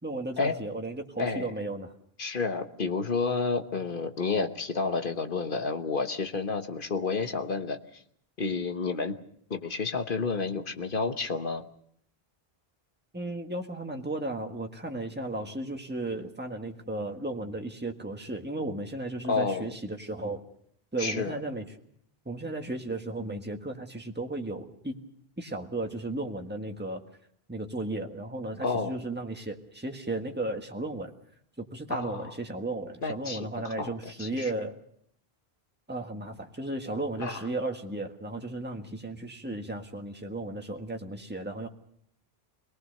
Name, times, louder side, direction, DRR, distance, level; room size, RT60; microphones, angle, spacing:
voice 1, 0.0-1.9 13.1-20.4 20.9-21.7 22.2-24.9 25.4-27.0 27.5-31.1 31.6-34.8 35.9-41.7, right 2 dB, 10° right, 3 dB, 1.6 m, -35 dB
voice 2, 1.2-1.5 2.2-8.0 8.4-9.1 9.5-11.7 19.3-19.7 21.0-21.4 28.6-29.0 31.9-32.3 33.0-34.5 37.2-37.4, left 4 dB, 55° left, 7 dB, 1.3 m, -30 dB
26.0 x 19.0 x 6.6 m, 0.69 s
omnidirectional pair, 1.0 m